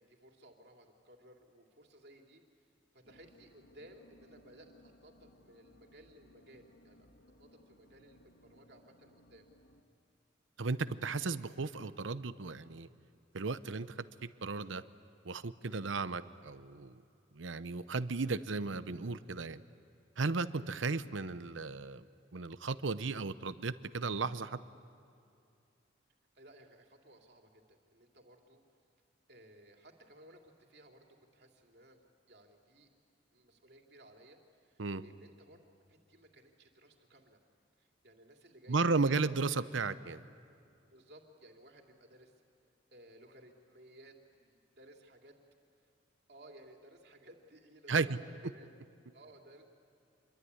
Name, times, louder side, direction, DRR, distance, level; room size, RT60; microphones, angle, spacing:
voice 1, 0.0-2.4 2.9-7.1 7.4-9.5 26.3-28.6 29.3-31.1 31.3-32.9 33.3-35.6 35.9-37.4 37.8-39.1 40.9-42.3 42.9-45.4 46.3-48.2 48.5-48.7 49.1-49.6, right 1 dB, 55° right, 2 dB, 3.0 m, -59 dB
sound 1, 3.0-9.8, left 1 dB, 80° left, 2.1 m, -63 dB
voice 2, 10.6-12.9 13.3-13.9 14.4-14.8 15.2-17.0 17.3-19.6 20.2-22.0 22.3-24.6 34.8-35.0 38.7-40.2 47.9-48.2, right 4 dB, 85° right, 13 dB, 0.8 m, -34 dB
27.0 x 23.0 x 9.6 m, 2.5 s
head